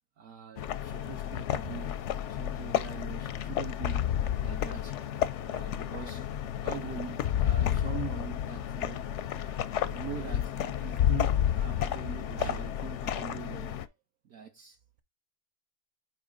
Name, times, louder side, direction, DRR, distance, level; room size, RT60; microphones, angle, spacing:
voice 1, 0.2-2.0 2.3-4.1 4.4-5.0 5.4-6.3 6.6-13.9 14.2-15.0, right 8 dB, 60° right, 1.1 m, -43 dB
sound 1, 0.6-13.9, left 10 dB, 65° left, 0.7 m, -31 dB
sound 2, 4.0-11.4, equal, 85° right, 2.4 m, -57 dB
8.8 x 3.0 x 5.0 m
omnidirectional pair, 1.7 m